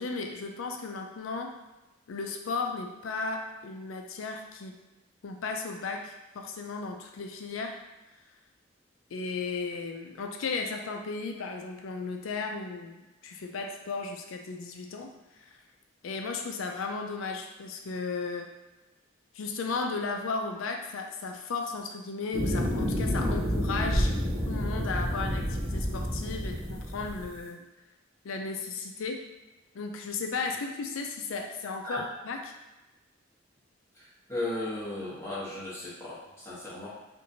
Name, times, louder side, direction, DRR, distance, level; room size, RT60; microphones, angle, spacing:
voice 1, 0.0-1.5 2.1-4.8 5.2-7.8 9.1-15.1 15.4-15.6 16.0-18.5 19.3-24.1 24.4-27.6 28.2-29.2 29.7-32.5, left 4 dB, 85° left, 3 dB, 0.4 m, -35 dB
sound 1, 22.3-27.3, equal, 45° right, 0.7 m, -29 dB
voice 2, 33.9-36.9, left 1 dB, 15° left, -10 dB, 1.0 m, -36 dB
2.9 x 2.5 x 2.6 m, 1.1 s
head